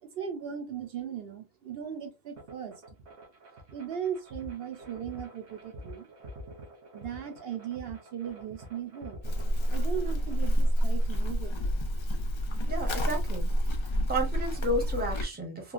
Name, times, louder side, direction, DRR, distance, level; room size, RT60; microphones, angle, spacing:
voice 1, 0.0-3.0 3.7-6.1 6.9-9.2 9.7-11.8, right 8 dB, 70° right, 0.7 m, -38 dB
sound 1, 2.4-11.3, right 1 dB, 85° right, 1.2 m, -48 dB
Livestock farm animals working animals, 9.2-15.3, equal, 45° left, 0.4 m, -28 dB
voice 2, 12.7-13.5 14.1-15.7, right 1 dB, 10° right, 0.7 m, -32 dB
3.0 x 2.2 x 2.4 m
omnidirectional pair, 1.1 m